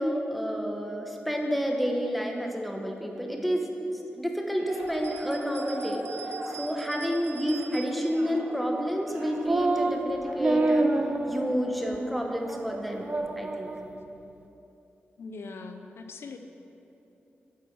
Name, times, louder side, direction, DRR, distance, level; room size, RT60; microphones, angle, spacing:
voice 1, 0.0-3.7 4.1-6.1 6.5-10.9 11.3-13.1 13.4-13.7, equal, ahead, 1 dB, 1.3 m, -29 dB
sound 1, 4.6-13.2, right 1 dB, 60° right, 1.6 m, -42 dB
sound 2, 4.9-8.2, right 8 dB, 75° right, 0.8 m, -45 dB
sound 3, 9.5-10.0 10.4-11.6 11.9-12.0 12.5-12.8 13.0-13.9, right 2 dB, 35° right, 0.6 m, -27 dB
voice 2, 15.2-16.4, left 4 dB, 75° left, 6 dB, 0.6 m, -41 dB
10.5 x 6.2 x 6.1 m, 3.0 s
cardioid pair, 65°, 4 cm